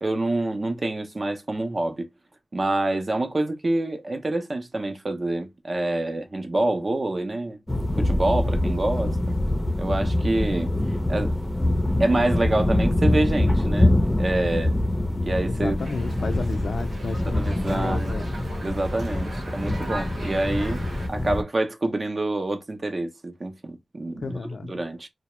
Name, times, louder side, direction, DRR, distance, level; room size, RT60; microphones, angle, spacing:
voice 1, 0.0-2.1 2.5-7.6 8.0-9.2 9.8-10.7 11.1-11.3 12.0-14.8 15.2-15.8 17.3-18.1 18.6-20.8 21.1-24.4 24.7-25.1, right 2 dB, 45° right, 0.6 m, -26 dB
sound 1, 7.7-21.4, left 1 dB, 15° left, 0.5 m, -24 dB
voice 2, 15.5-18.3 24.1-24.7, left 3 dB, 80° left, 0.4 m, -31 dB
Dog, 15.8-21.1, right 1 dB, 80° right, 0.9 m, -39 dB
2.3 x 2.0 x 2.9 m
wide cardioid pair, 80°, 0 cm